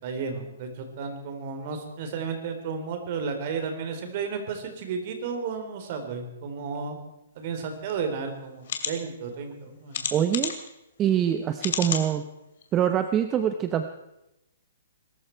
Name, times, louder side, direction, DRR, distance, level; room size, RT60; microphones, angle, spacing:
voice 1, 0.0-7.0 7.4-10.0, right 5 dB, 45° right, 5 dB, 3.7 m, -33 dB
sound 1, 7.9-8.0 8.6-8.9 9.9-10.7 11.6-12.1 12.6-12.7 13.1-13.2, left 8 dB, 60° left, 2.5 m, -30 dB
voice 2, 10.1-10.5 11.0-12.2 12.7-13.9, right 10 dB, 20° right, 8 dB, 0.9 m, -24 dB
23.0 x 13.5 x 4.6 m, 0.89 s
hypercardioid pair, 145°, 0 cm